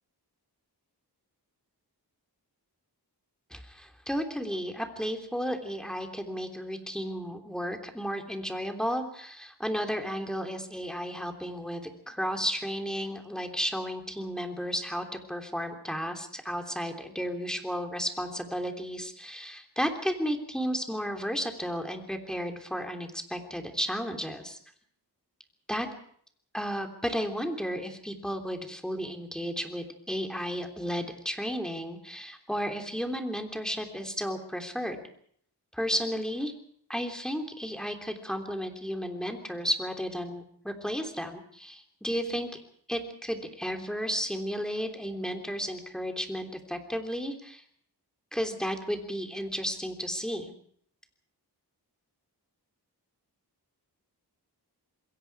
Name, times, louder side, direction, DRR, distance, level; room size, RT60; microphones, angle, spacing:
voice 1, 3.5-24.6 25.7-25.9 26.5-35.0 35.7-36.5 36.9-42.5 42.9-47.6 48.3-50.5, equal, ahead, 4 dB, 3.4 m, -33 dB
27.0 x 22.0 x 4.9 m, 0.63 s
wide cardioid pair, 85°, 41 cm